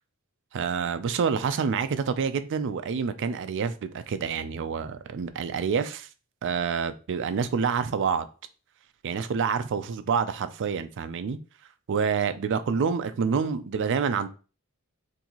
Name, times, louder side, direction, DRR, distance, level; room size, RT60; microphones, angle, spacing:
voice 1, 0.5-6.1 6.4-8.3 9.0-11.4 11.9-14.3, right 6 dB, 55° right, 11 dB, 0.4 m, -27 dB
3.9 x 2.7 x 2.9 m, 0.35 s
head